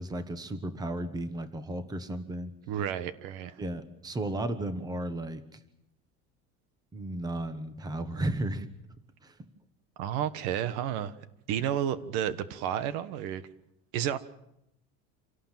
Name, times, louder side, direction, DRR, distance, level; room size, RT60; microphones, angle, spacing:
voice 1, 0.0-2.5 3.6-5.6 6.9-8.7 9.2-9.5, right 1 dB, 10° right, 11 dB, 1.3 m, -34 dB
voice 2, 2.7-3.6 10.0-11.1 11.5-13.4 13.9-14.2, right 10 dB, 65° right, 14 dB, 1.4 m, -31 dB
27.5 x 18.0 x 7.5 m, 0.83 s
cardioid pair, 175°, 32 cm